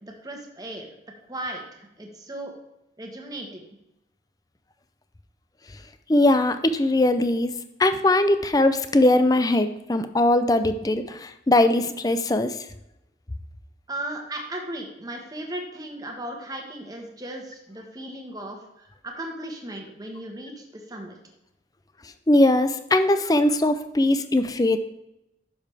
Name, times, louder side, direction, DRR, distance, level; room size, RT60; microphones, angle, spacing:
voice 1, 0.0-1.0 1.3-2.5 3.0-3.6 13.9-21.2, right 1 dB, 20° right, 2 dB, 1.3 m, -36 dB
voice 2, 6.1-12.6 22.3-24.8, left 1 dB, 20° left, 10 dB, 0.4 m, -20 dB
10.5 x 6.9 x 3.4 m, 0.88 s
head